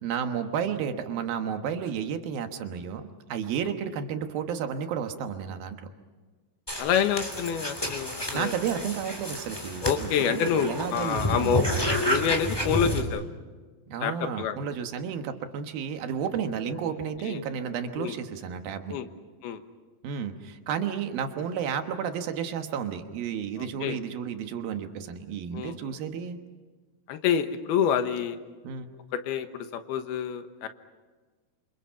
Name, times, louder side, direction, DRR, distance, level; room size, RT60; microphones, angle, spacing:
voice 1, 0.0-5.9 8.1-11.6 13.9-19.0 20.0-26.4 28.6-28.9, right 7 dB, 75° right, 7 dB, 3.1 m, -32 dB
sound 1, 6.7-13.0, equal, 5° left, 2.6 m, -30 dB
voice 2, 6.8-8.5 9.8-11.6 11.9-13.2 14.0-14.6 16.6-16.8 17.2-17.4 18.0-18.1 18.9-19.1 19.4-19.6 23.8-24.0 25.5-26.0 27.1-28.4 29.1-30.7, left 8 dB, 90° left, 9 dB, 3.2 m, -28 dB
28.5 x 26.0 x 5.8 m, 1.4 s
omnidirectional pair, 4.4 m